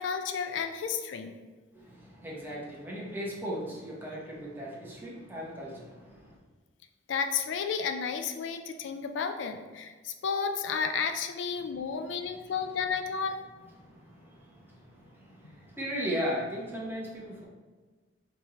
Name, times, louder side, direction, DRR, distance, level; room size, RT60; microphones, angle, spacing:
voice 1, 0.0-1.4 7.1-13.4, left 6 dB, 70° left, 7 dB, 0.3 m, -32 dB
voice 2, 1.7-6.4 12.2-12.5 13.8-17.4, equal, 10° right, -4 dB, 0.8 m, -37 dB
4.5 x 3.0 x 3.6 m, 1.4 s
head